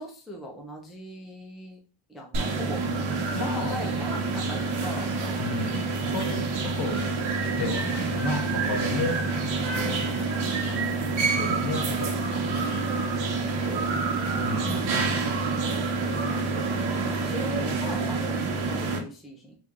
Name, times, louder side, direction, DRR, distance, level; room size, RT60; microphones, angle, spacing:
voice 1, 0.0-1.8 2.1-2.8 3.2-5.1 9.0-9.8 15.6-19.6, equal, ahead, 0 dB, 0.5 m, -41 dB
sound 1, 2.3-19.0, right 3 dB, 85° right, 1.1 m, -27 dB
voice 2, 3.3-3.8 5.4-7.1 7.6-9.2 9.6-10.8 11.2-12.9 14.4-14.9, left 3 dB, 55° left, 4 dB, 1.1 m, -33 dB
4.3 x 2.5 x 3.6 m, 0.38 s
wide cardioid pair, 170°, 47 cm